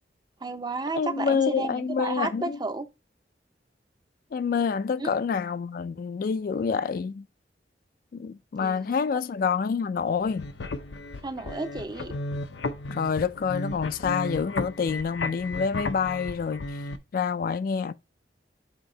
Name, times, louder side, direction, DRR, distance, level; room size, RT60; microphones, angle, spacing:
voice 1, 0.4-2.9 5.0-5.1 8.6-9.2 11.2-12.1, right 3 dB, 25° right, 0.5 m, -32 dB
voice 2, 1.0-2.6 4.3-7.2 8.1-10.5 12.9-16.6 17.1-17.9, left 6 dB, 50° left, 0.3 m, -27 dB
sound 1, 10.2-17.0, left 2 dB, 85° left, 0.6 m, -34 dB
7.9 x 2.8 x 4.3 m
head